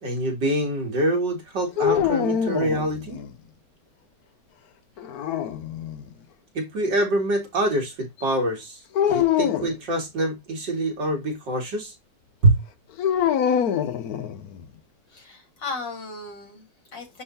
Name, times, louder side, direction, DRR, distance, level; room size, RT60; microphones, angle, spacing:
voice 1, 0.0-3.2 6.5-8.8 9.1-11.9 12.4-12.6, right 1 dB, 90° right, 3.3 m, -25 dB
sound 1, 1.8-3.3 5.0-6.1 9.0-9.8 13.0-14.6, left 9 dB, 65° left, 1.2 m, -24 dB
voice 2, 15.1-17.2, left 4 dB, 90° left, 4.0 m, -36 dB
11.0 x 3.6 x 2.8 m
omnidirectional pair, 1.9 m